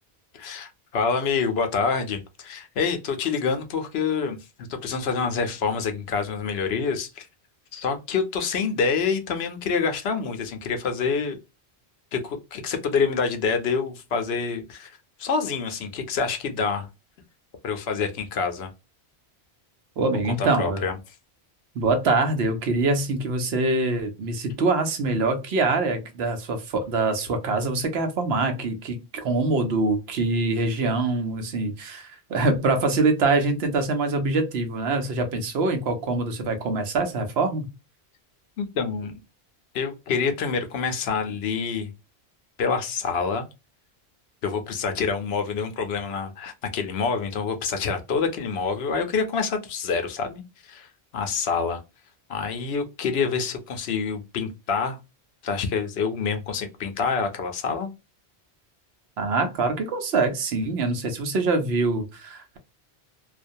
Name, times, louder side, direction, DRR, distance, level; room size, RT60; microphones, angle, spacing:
voice 1, 0.3-4.4 4.7-7.3 7.7-11.4 12.1-16.9 17.6-18.7 20.4-21.0 38.6-39.2 39.7-41.9 42.6-43.5 44.4-50.9 51.1-51.8 52.3-55.0 55.4-57.9, left 5 dB, 75° left, 0.8 m, -27 dB
voice 2, 20.0-20.9 21.7-37.7 59.2-62.6, right 3 dB, 75° right, 0.9 m, -24 dB
2.4 x 2.2 x 2.5 m
omnidirectional pair, 1.1 m